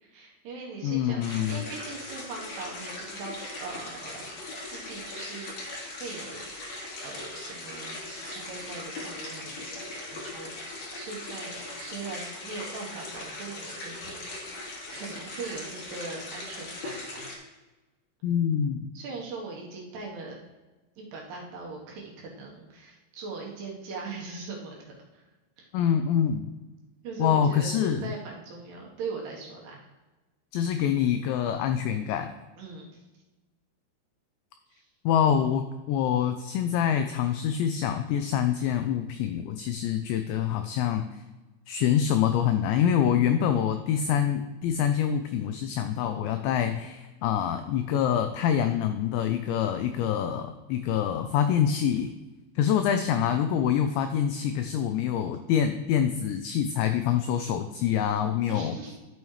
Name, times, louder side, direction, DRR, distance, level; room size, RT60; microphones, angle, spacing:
voice 1, 0.0-6.4 7.0-9.8 10.1-14.6 14.9-17.3 18.9-20.4 21.0-25.2 25.6-25.7 27.0-29.9 32.6-33.0 34.7-34.9 58.5-59.0, right 4 dB, 70° right, -2 dB, 2.8 m, -40 dB
voice 2, 0.8-1.6 18.2-18.9 25.7-26.5 27.2-28.0 30.5-32.3 35.1-41.2 41.7-52.1 52.6-58.8, left 9 dB, 90° left, 8 dB, 2.5 m, -26 dB
sound 1, 1.2-17.4, left 2 dB, 50° left, 2.1 m, -39 dB
12.0 x 7.0 x 3.2 m, 1.2 s
omnidirectional pair, 5.7 m